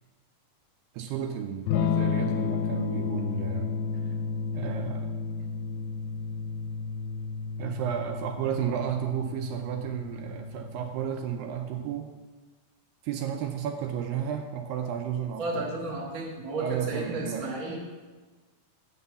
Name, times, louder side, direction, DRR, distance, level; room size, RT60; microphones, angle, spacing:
voice 1, 1.0-3.7 4.5-5.2 7.6-12.1 13.0-15.6 16.6-17.5, right 9 dB, 80° right, 5 dB, 2.2 m, -32 dB
Electric guitar / Strum, 1.7-11.4, left 5 dB, 85° left, 2.5 m, -32 dB
voice 2, 15.4-17.8, right 2 dB, 60° right, -3 dB, 0.9 m, -33 dB
8.5 x 4.3 x 6.8 m, 1.3 s
omnidirectional pair, 4.3 m